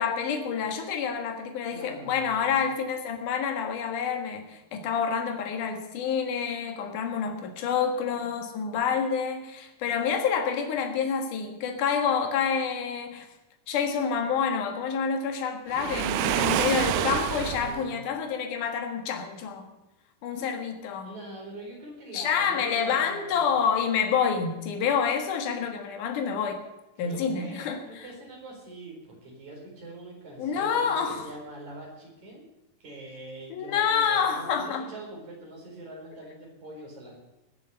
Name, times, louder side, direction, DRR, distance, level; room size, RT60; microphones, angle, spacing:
voice 1, 0.0-13.3 13.7-19.7 20.2-21.1 22.1-26.6 27.0-28.1 30.4-31.3 33.5-34.9, left 6 dB, 65° left, 5 dB, 3.0 m, -28 dB
voice 2, 1.7-2.6 17.3-17.9 21.0-23.5 27.0-32.5 32.8-37.2, right 1 dB, 55° right, -1 dB, 5.7 m, -43 dB
Waves surf, 15.7-17.8, right 12 dB, 80° right, 1.9 m, -27 dB
20.5 x 7.1 x 6.8 m, 0.98 s
omnidirectional pair, 4.1 m